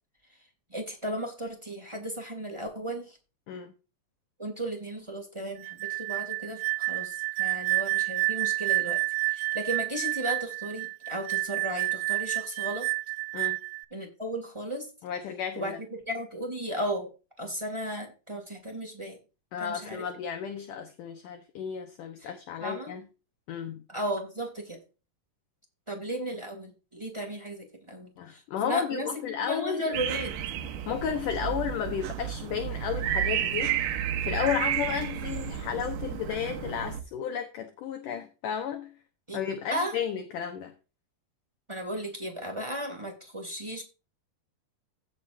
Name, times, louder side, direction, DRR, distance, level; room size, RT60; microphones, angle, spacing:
voice 1, 0.7-3.2 4.4-9.0 9.3-12.9 13.9-14.9 15.5-17.1 17.4-19.2 19.6-20.0 22.2-22.3 22.6-22.9 23.9-24.8 25.9-29.1 29.4-30.3 39.3-39.4 39.7-40.0 41.7-43.8, right 1 dB, 10° right, 1.4 m, -35 dB
sound 1, 5.6-13.9, right 25 dB, 85° right, 3.0 m, -29 dB
voice 2, 15.0-15.8 19.5-23.1 23.5-23.8 28.2-30.0 30.9-33.8 34.2-38.9 39.3-40.7, left 8 dB, 70° left, 2.1 m, -33 dB
sound 2, 29.9-37.0, right 10 dB, 70° right, 2.1 m, -31 dB
16.5 x 7.1 x 2.7 m
omnidirectional pair, 5.0 m